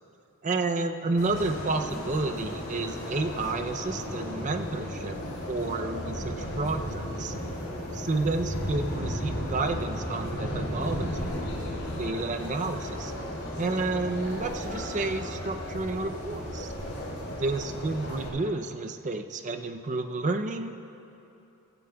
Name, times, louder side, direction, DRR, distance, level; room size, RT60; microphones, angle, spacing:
voice 1, 0.4-5.2 5.5-7.3 7.9-11.3 11.9-13.1 13.6-16.7 17.3-20.7, right 3 dB, 35° right, 7 dB, 0.5 m, -30 dB
sound 1, 1.2-18.3, equal, 65° left, 3.1 m, -34 dB
16.0 x 15.0 x 2.3 m, 2.9 s
head